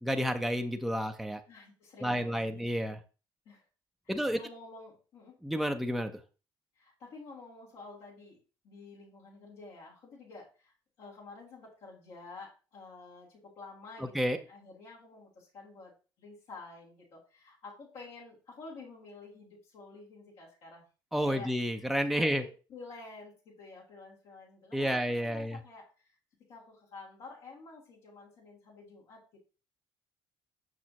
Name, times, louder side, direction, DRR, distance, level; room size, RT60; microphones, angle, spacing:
voice 1, 0.0-1.4 2.0-3.0 4.1-4.4 5.4-6.1 14.0-14.4 21.1-22.4 24.7-25.6, equal, ahead, 5 dB, 0.7 m, -30 dB
voice 2, 1.5-2.7 3.5-3.6 4.0-5.4 6.8-8.4 8.6-15.9 16.2-20.9 21.2-21.5 22.1-26.2 26.5-29.2, left 3 dB, 75° left, -7 dB, 3.7 m, -50 dB
6.4 x 5.8 x 3.0 m, 0.34 s
supercardioid pair, 70°, 11 cm